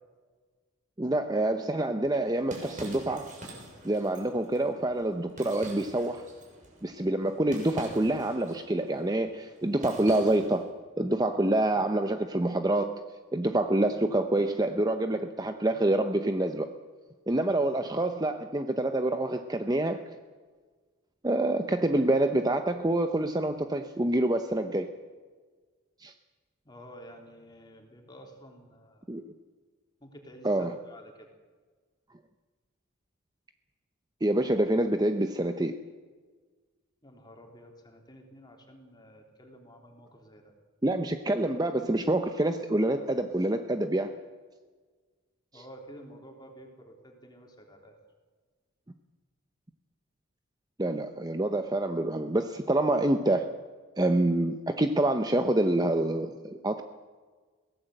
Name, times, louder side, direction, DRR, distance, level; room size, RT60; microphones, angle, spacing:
voice 1, 1.0-3.3 3.8-6.2 6.8-10.7 11.0-13.0 13.3-16.7 17.3-20.0 21.2-24.9 26.0-26.1 29.1-29.2 30.4-30.7 34.2-35.8 40.8-44.1 45.5-45.6 50.8-53.5 54.0-56.8, right 1 dB, 20° right, 7 dB, 0.7 m, -27 dB
sound 1, 2.0-10.7, right 1 dB, 35° right, 6.6 m, -46 dB
voice 2, 26.7-29.1 30.0-31.3 37.0-40.4 45.5-47.9, equal, 20° left, 2 dB, 3.5 m, -50 dB
22.5 x 17.5 x 7.8 m, 1.5 s
head